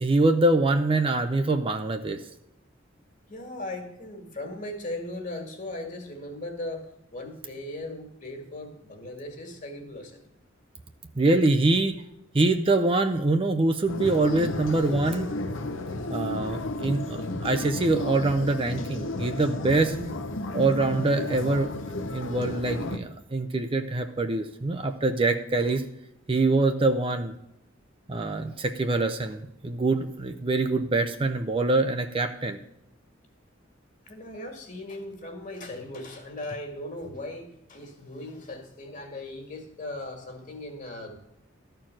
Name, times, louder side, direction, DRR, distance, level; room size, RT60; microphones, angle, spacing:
voice 1, 0.0-2.2 11.1-12.0 12.3-15.3 16.1-19.9 20.5-21.7 22.1-25.8 26.3-27.4 28.1-32.6, right 2 dB, 25° right, 7 dB, 0.5 m, -24 dB
voice 2, 3.3-6.9 7.1-10.2 19.9-20.2 34.1-41.2, left 1 dB, 40° left, 4 dB, 1.9 m, -38 dB
sound 1, 13.9-23.0, left 2 dB, 75° left, 0.9 m, -33 dB
13.0 x 4.5 x 7.5 m, 0.81 s
head